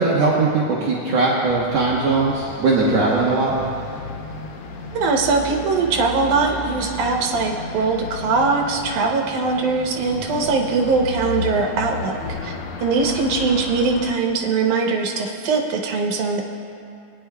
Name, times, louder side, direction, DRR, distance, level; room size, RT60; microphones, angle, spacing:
voice 1, 0.0-3.5, right 3 dB, 65° right, -5 dB, 2.0 m, -19 dB
sound 1, 1.5-14.1, left 3 dB, 70° left, 1.4 m, -34 dB
voice 2, 4.9-12.5 12.8-16.4, right 4 dB, 85° right, 1 dB, 2.4 m, -21 dB
21.0 x 9.6 x 2.3 m, 2.7 s
omnidirectional pair, 3.4 m